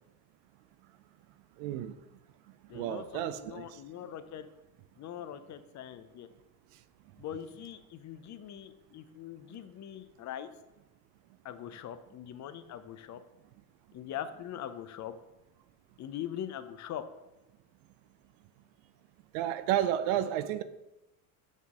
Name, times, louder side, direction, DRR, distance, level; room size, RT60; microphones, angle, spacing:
voice 1, 1.6-1.9 2.7-3.8 19.3-20.6, right 11 dB, 75° right, 0.6 m, -31 dB
voice 2, 2.7-4.5 5.0-6.3 7.2-10.5 11.4-13.2 13.9-15.1 16.0-17.0, left 10 dB, 40° left, 0.5 m, -42 dB
7.3 x 3.9 x 3.6 m
supercardioid pair, 100°, 45 cm